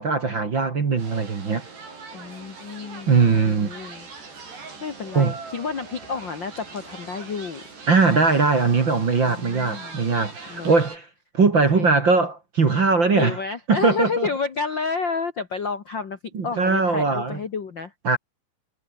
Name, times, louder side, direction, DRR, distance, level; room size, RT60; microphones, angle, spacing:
voice 1, 0.0-1.7 3.1-3.7 5.1-5.4 7.9-11.1 11.3-13.4 13.7-14.3 16.3-17.4 18.0-18.2, right 4 dB, 35° right, 2.3 m, -20 dB
sound 1, 1.0-11.0, right 4 dB, 75° right, 10.0 m, -41 dB
voice 2, 2.1-4.1 4.8-7.6 9.2-10.0 10.5-10.7 11.7-11.9 13.1-17.9, left 5 dB, 50° left, 1.3 m, -30 dB
omnidirectional pair, 4.8 m